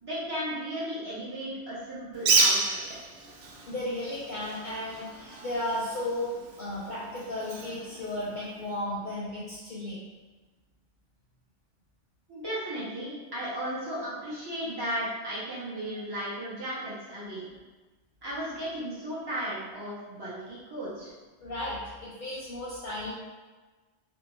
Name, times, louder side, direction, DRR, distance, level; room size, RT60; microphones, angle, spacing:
voice 1, 0.0-2.8 12.3-17.5 18.2-21.1, equal, 40° right, -9 dB, 0.3 m, -35 dB
Bird, 2.1-8.8, right 4 dB, 85° right, 0.9 m, -31 dB
voice 2, 3.7-6.3 6.6-10.0 16.7-16.8 21.4-23.1, left 1 dB, 55° left, -6 dB, 0.6 m, -34 dB
2.6 x 2.2 x 2.9 m, 1.3 s
omnidirectional pair, 1.2 m